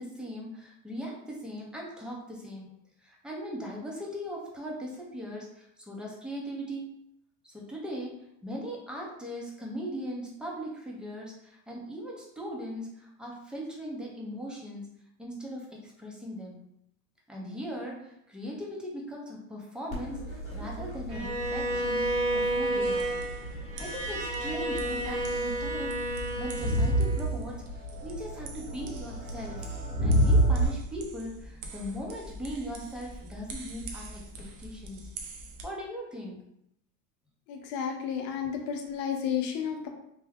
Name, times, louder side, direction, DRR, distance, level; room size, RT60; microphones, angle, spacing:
voice 1, 0.0-2.7 3.0-6.8 7.4-8.1 8.4-14.9 15.2-16.6 17.3-22.0 22.3-23.2 23.8-27.6 28.0-29.7 30.0-35.1 35.6-36.4, equal, ahead, -3 dB, 0.7 m, -39 dB
Crowd, 19.9-30.7, right 1 dB, 15° left, 1.3 m, -30 dB
Bowed string instrument, 21.1-27.3, right 1 dB, 35° right, 0.8 m, -31 dB
sound 1, 22.8-35.7, right 2 dB, 70° right, 0.8 m, -45 dB
voice 2, 37.5-39.9, left 8 dB, 55° left, 3 dB, 0.8 m, -32 dB
3.5 x 2.2 x 3.5 m, 0.77 s
supercardioid pair, 115°, 42 cm